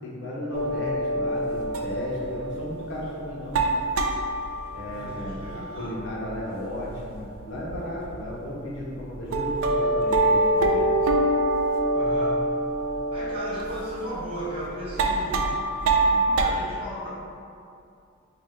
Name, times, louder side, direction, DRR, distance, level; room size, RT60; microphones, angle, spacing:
voice 1, 0.0-3.6 4.7-10.9, left 1 dB, 60° left, -4 dB, 0.6 m, -34 dB
sound 1, 0.5-6.6 6.8-8.2 8.8-8.9 9.3-16.5, right 1 dB, 90° right, 0.3 m, -25 dB
voice 2, 4.9-6.0 11.9-12.4 13.1-17.1, right 1 dB, 30° right, -9 dB, 1.0 m, -36 dB
3.1 x 2.4 x 3.8 m, 2.4 s
head